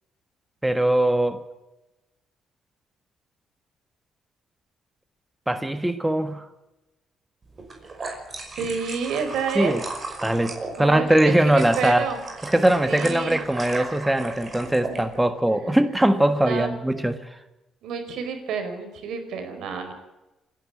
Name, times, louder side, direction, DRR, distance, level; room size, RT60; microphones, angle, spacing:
voice 1, 0.6-1.4 5.5-6.5 9.5-9.8 10.2-12.0 12.4-17.4, right 1 dB, 5° right, 9 dB, 1.4 m, -21 dB
sound 1, 7.6-15.0, right 3 dB, 30° right, 5.6 m, -36 dB
voice 2, 8.6-9.8 10.8-12.2 12.9-13.4 14.9-15.0 15.6-15.8 16.4-16.7 17.8-19.9, right 5 dB, 80° right, 7 dB, 4.7 m, -29 dB
29.0 x 11.0 x 8.4 m, 1.0 s
cardioid pair, 110°, 0 cm